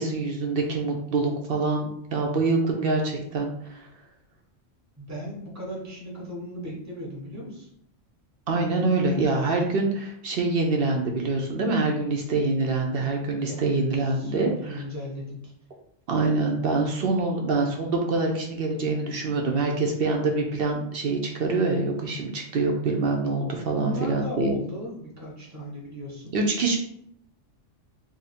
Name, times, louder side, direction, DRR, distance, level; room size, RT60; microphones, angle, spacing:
voice 1, 0.0-3.9 8.5-14.8 16.1-24.5 26.3-26.8, right 3 dB, 60° right, 1 dB, 0.7 m, -25 dB
voice 2, 5.0-7.7 13.4-13.8 14.1-15.4 23.7-26.3, equal, 15° right, -2 dB, 0.9 m, -36 dB
2.8 x 2.6 x 4.1 m, 0.71 s
omnidirectional pair, 1.3 m